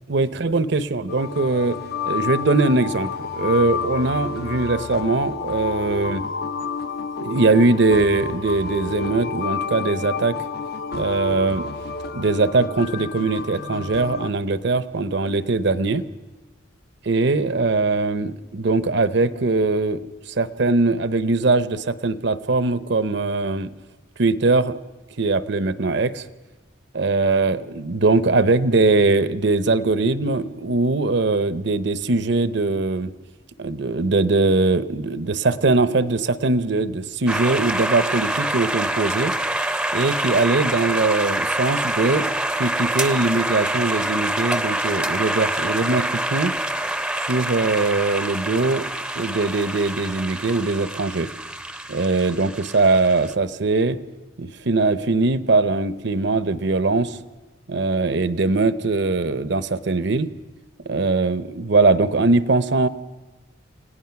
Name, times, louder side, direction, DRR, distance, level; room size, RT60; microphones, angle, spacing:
voice 1, 0.1-1.8 2.0-6.2 7.2-10.4 10.9-11.7 12.1-16.0 17.0-23.7 24.2-24.8 25.2-26.2 26.9-33.1 33.6-39.3 39.9-46.5 47.2-48.8 49.1-51.3 51.9-54.0 54.4-57.2 57.7-60.3 60.9-62.9, right 3 dB, 60° right, 13 dB, 0.8 m, -21 dB
sound 1, 1.1-14.3, left 5 dB, 55° left, 0.7 m, -30 dB
sound 2, 37.3-53.3, right 1 dB, 5° right, 0.7 m, -26 dB
29.0 x 17.5 x 5.9 m, 1.2 s
head